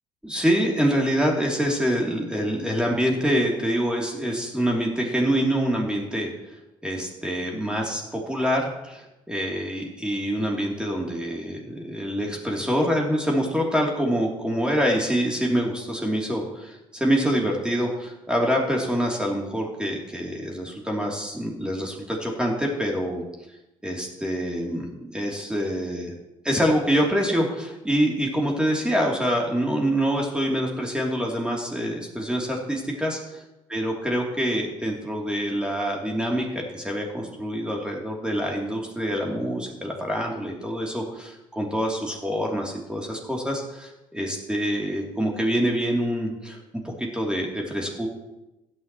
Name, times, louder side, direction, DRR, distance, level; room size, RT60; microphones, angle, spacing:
voice 1, 0.2-23.2 23.8-26.1 26.4-33.4 33.7-46.6 46.8-48.1, equal, 5° right, -1 dB, 2.9 m, -26 dB
16.5 x 10.0 x 3.0 m, 0.96 s
hypercardioid pair, 50°, 16 cm